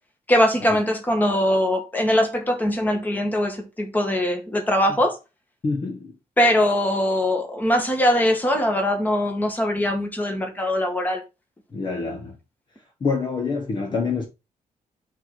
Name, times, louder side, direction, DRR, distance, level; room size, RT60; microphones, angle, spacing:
voice 1, 0.3-5.2 6.4-11.2, left 1 dB, 10° left, 1.6 m, -21 dB
voice 2, 5.6-6.1 11.7-12.4 13.0-14.2, left 4 dB, 30° left, 1.1 m, -26 dB
5.7 x 4.0 x 6.1 m
wide cardioid pair, 180°, 15 cm